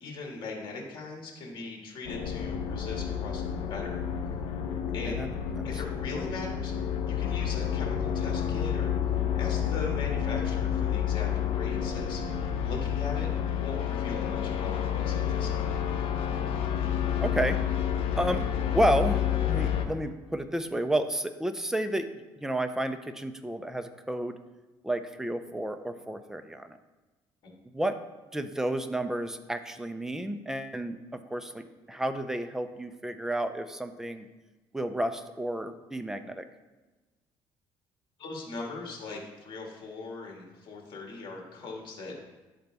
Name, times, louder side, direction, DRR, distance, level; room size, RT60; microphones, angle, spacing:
voice 1, 0.0-3.4 3.7-4.0 4.9-5.2 5.6-6.7 7.1-12.2 12.6-13.3 13.5-15.7 38.2-42.1, left 3 dB, 55° left, -1 dB, 1.9 m, -40 dB
sound 1, 2.0-19.8, left 9 dB, 80° left, 0.7 m, -29 dB
voice 2, 5.0-5.7 17.2-17.6 18.2-24.4 24.8-26.8 27.7-28.0 28.3-34.3 34.7-36.5, right 1 dB, 5° right, 8 dB, 0.5 m, -31 dB
11.5 x 3.9 x 3.5 m, 1.2 s
cardioid pair, 115°, 10 cm